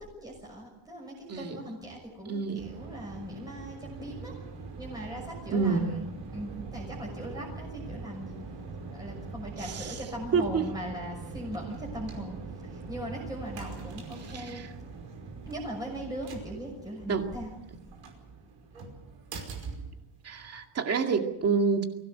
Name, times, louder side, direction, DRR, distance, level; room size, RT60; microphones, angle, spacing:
voice 1, 0.0-4.3 4.8-8.4 8.9-14.6 15.5-17.5 17.8-17.9 18.7-18.8, equal, 10° right, -3 dB, 6.2 m, -40 dB
voice 2, 1.3-1.6 2.3-2.7 5.5-5.9 9.6-10.0 10.3-10.7 14.3-14.7 17.1-17.3 20.2-21.8, right 5 dB, 30° right, 4 dB, 2.3 m, -28 dB
sound 1, 2.6-20.6, right 4 dB, 70° right, 5.4 m, -42 dB
23.5 x 17.0 x 8.0 m, 0.91 s
cardioid pair, 170°, 45 cm